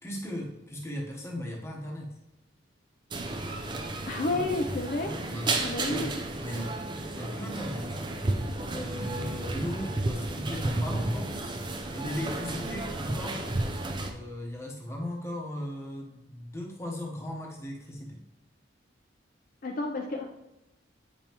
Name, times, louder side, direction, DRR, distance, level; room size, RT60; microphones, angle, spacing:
voice 1, 0.0-2.2 5.3-6.1 6.4-6.8 7.1-8.0 8.7-11.3 11.9-13.5 14.0-18.2, left 1 dB, 15° left, -1 dB, 1.0 m, -37 dB
sound 1, 3.1-14.1, right 2 dB, 25° right, 0.5 m, -32 dB
voice 2, 4.1-5.1 5.6-6.1 19.6-20.2, left 2 dB, 45° left, 1 dB, 0.5 m, -30 dB
8.3 x 5.3 x 3.0 m, 0.96 s
head